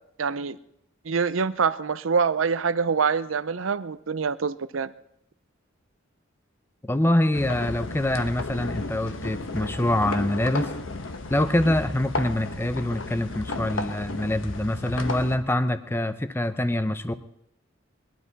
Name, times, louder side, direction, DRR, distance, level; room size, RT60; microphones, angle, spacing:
voice 1, 0.2-0.6 1.0-4.9, right 5 dB, 85° right, 15 dB, 0.6 m, -25 dB
voice 2, 6.8-10.7 11.3-17.1, left 1 dB, 10° left, 11 dB, 0.7 m, -25 dB
sound 1, 7.3-15.4, left 2 dB, 80° left, 1.1 m, -33 dB
21.0 x 12.0 x 4.1 m, 0.75 s
head